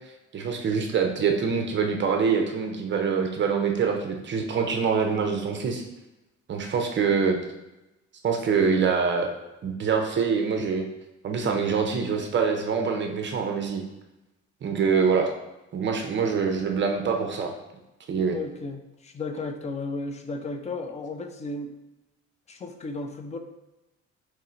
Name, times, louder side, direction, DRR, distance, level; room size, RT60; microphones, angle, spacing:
voice 1, 0.3-5.8 6.5-7.4 8.2-9.3 9.6-10.8 11.2-13.8 14.6-15.3 15.7-17.5 18.1-18.4, right 5 dB, 40° right, 3 dB, 0.5 m, -25 dB
voice 2, 18.3-21.7 22.5-23.4, left 3 dB, 25° left, 6 dB, 0.4 m, -34 dB
3.6 x 3.1 x 4.3 m, 0.97 s
cardioid pair, 155°, 29 cm